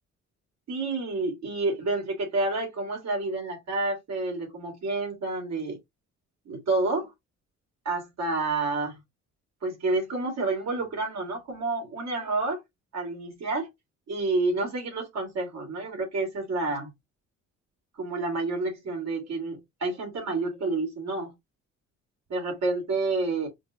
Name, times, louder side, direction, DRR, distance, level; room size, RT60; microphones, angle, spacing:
voice 1, 0.7-5.8 6.5-7.1 7.8-9.0 9.6-12.6 12.9-13.7 14.1-16.9 18.0-21.3 22.3-23.5, right 3 dB, 60° right, 2.3 m, -29 dB
5.0 x 2.2 x 2.9 m
cardioid pair, 90°, 30 cm